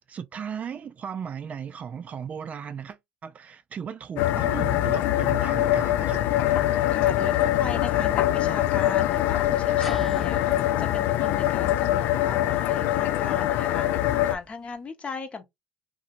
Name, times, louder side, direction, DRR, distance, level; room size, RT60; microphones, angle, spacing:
voice 1, 0.0-6.2, right 7 dB, 40° right, 0.4 m, -36 dB
sound 1, 4.2-14.4, left 13 dB, 70° left, 0.3 m, -23 dB
voice 2, 6.9-15.4, left 4 dB, 35° left, 0.9 m, -38 dB
sound 2, 9.8-14.7, right 1 dB, 5° left, 1.0 m, -44 dB
2.7 x 2.6 x 2.6 m
supercardioid pair, 75°, 4 cm